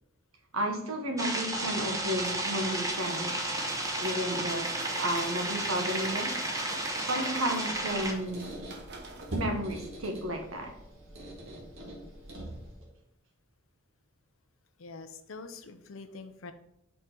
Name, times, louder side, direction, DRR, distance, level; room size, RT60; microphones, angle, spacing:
voice 1, 0.5-3.4 4.0-6.4 7.1-8.5 9.3-10.7, right 1 dB, 90° right, 4 dB, 1.2 m, -32 dB
sound 1, 1.2-8.1, right 1 dB, 15° right, 0.8 m, -33 dB
sound 2, 1.4-10.2, right 3 dB, 55° right, 0.9 m, -46 dB
Squeak, 7.7-12.9, right 1 dB, 75° right, 1.8 m, -42 dB
voice 2, 14.8-16.5, left 4 dB, 75° left, 9 dB, 0.6 m, -45 dB
5.4 x 4.4 x 5.1 m, 0.79 s
head